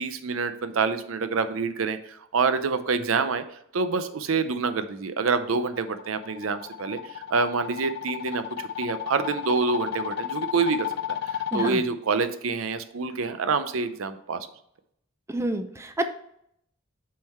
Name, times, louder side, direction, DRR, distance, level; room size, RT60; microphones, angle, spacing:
voice 1, 0.0-3.4 3.7-10.9 11.2-14.4, right 4 dB, 85° right, 10 dB, 0.6 m, -27 dB
sound 1, 5.6-11.7, left 9 dB, 55° left, 0.4 m, -33 dB
voice 2, 11.5-11.8 15.3-16.0, right 1 dB, 15° right, 8 dB, 0.5 m, -28 dB
7.5 x 3.8 x 4.2 m, 0.71 s
head